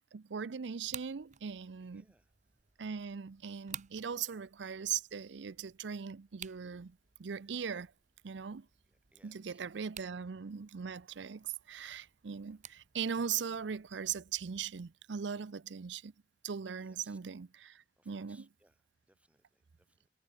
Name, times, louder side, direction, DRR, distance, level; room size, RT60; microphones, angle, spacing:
voice 1, 0.0-2.0 2.8-7.9 8.2-8.7 9.2-16.1 16.4-18.5, right 7 dB, 70° right, 0.5 m, -39 dB
sound 1, 0.8-14.9, right 10 dB, 40° right, 1.3 m, -54 dB
voice 2, 1.8-2.3 8.8-10.1 12.5-12.6 16.7-17.2 18.0-20.1, right 1 dB, 5° right, 6.8 m, -70 dB
head